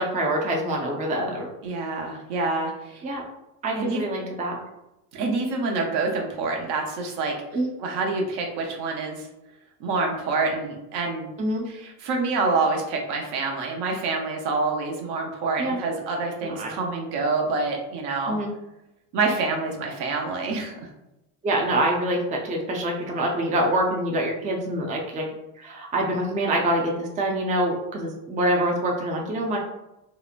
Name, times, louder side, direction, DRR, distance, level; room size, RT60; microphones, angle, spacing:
voice 1, 0.0-1.5 3.0-3.2 3.6-4.6 7.5-7.7 11.4-11.6 15.6-15.8 16.4-16.7 18.3-18.5 21.4-25.3 25.6-29.6, right 1 dB, 20° right, 0 dB, 0.4 m, -25 dB
voice 2, 1.6-3.0 3.8-4.0 5.1-7.4 7.8-9.3 9.8-11.3 11.7-18.4 19.1-20.7, right 3 dB, 65° right, 1 dB, 0.8 m, -27 dB
2.9 x 2.0 x 2.4 m, 0.93 s
supercardioid pair, 85°, 45 cm